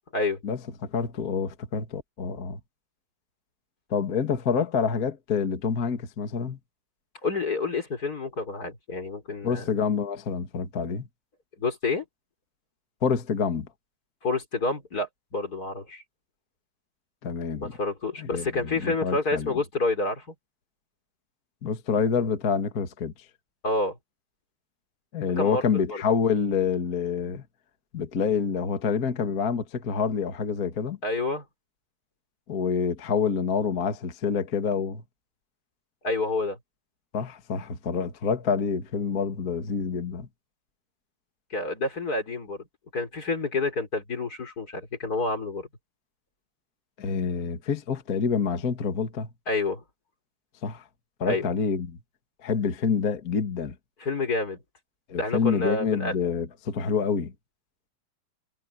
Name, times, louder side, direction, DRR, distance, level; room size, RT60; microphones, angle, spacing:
voice 1, 0.4-2.6 3.9-6.6 9.4-11.1 13.0-13.7 17.2-17.7 18.2-19.5 21.6-23.1 25.1-27.4 27.9-31.0 32.5-35.0 37.1-40.3 47.0-49.3 50.6-50.8 51.2-52.0 52.4-53.7 55.1-57.3, left 6 dB, 55° left, 0.9 m, -27 dB
voice 2, 7.2-9.6 11.6-12.0 14.2-16.0 17.6-20.2 23.6-24.0 25.4-26.0 31.0-31.4 36.0-36.6 41.5-42.6 42.9-45.7 49.5-49.8 51.2-51.5 54.0-54.6 55.2-56.1, left 3 dB, 20° left, 3.6 m, -28 dB
omnidirectional pair, 5.2 m